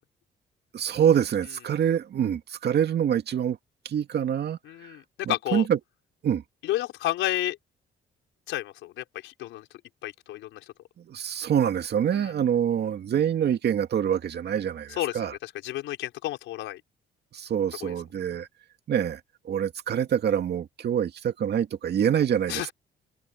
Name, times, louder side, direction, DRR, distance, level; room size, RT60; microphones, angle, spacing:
voice 1, 0.7-3.6 3.8-5.0 5.3-5.8 6.2-6.4 11.0-15.3 17.3-18.5 18.9-22.7, right 9 dB, 60° right, 2.2 m, -26 dB
voice 2, 4.6-5.7 6.6-7.6 8.5-9.7 10.0-10.7 12.1-12.3 14.9-16.8 17.8-17.9 22.5-22.7, left 15 dB, 90° left, 5.0 m, -31 dB
cardioid pair, 85°, 19 cm